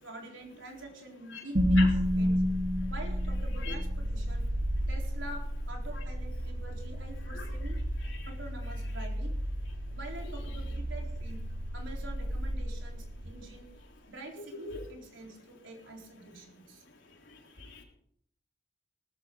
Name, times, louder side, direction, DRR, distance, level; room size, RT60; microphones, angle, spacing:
voice 1, 0.0-2.4 2.9-4.5 4.9-7.8 8.3-9.3 9.9-11.4 11.7-13.7 14.1-16.8, right 2 dB, 80° right, 0 dB, 4.1 m, -46 dB
sound 1, 1.5-13.7, equal, 45° right, 2.0 m, -31 dB
voice 2, 14.5-14.8 17.1-17.8, left 4 dB, 75° left, 0 dB, 3.8 m, -42 dB
19.5 x 13.5 x 3.9 m, 0.66 s
head